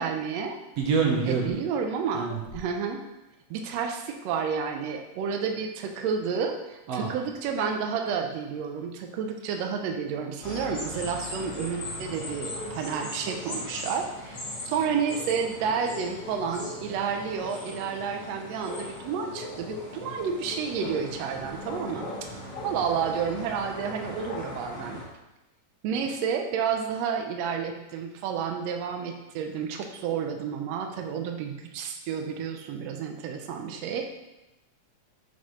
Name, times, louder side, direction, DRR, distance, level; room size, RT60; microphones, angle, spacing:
voice 1, 0.0-0.6 1.2-3.0 3.5-14.4 14.6-22.3 22.6-25.0 25.8-34.2, right 6 dB, 85° right, 4 dB, 1.5 m, -30 dB
voice 2, 0.6-1.6 2.1-2.4 6.9-7.2 21.4-21.6, right 5 dB, 65° right, 0 dB, 1.7 m, -27 dB
sound 1, 10.4-25.0, left 1 dB, 35° left, 3.0 m, -38 dB
7.3 x 6.1 x 3.1 m, 0.99 s
omnidirectional pair, 3.7 m